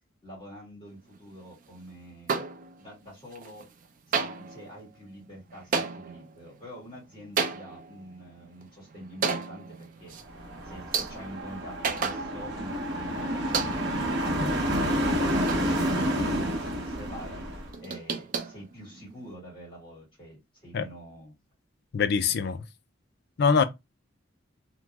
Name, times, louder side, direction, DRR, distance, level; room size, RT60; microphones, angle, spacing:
voice 1, 0.2-2.5 2.8-3.7 4.1-10.2 10.6-15.0 15.6-21.3 22.3-22.4, equal, 25° left, 2.2 m, -46 dB
sound 1, 2.3-3.0 3.3-3.9 4.1-12.7 13.0-13.1 13.5-14.1 14.6-16.3 16.6-16.7 16.9-17.0 17.4-19.3, right 5 dB, 45° right, 0.4 m, -34 dB
sound 2, 10.3-17.7, equal, 60° right, 0.8 m, -29 dB
voice 2, 21.9-22.6 23.4-23.6, left 5 dB, 55° left, 0.4 m, -23 dB
3.0 x 2.9 x 2.3 m
head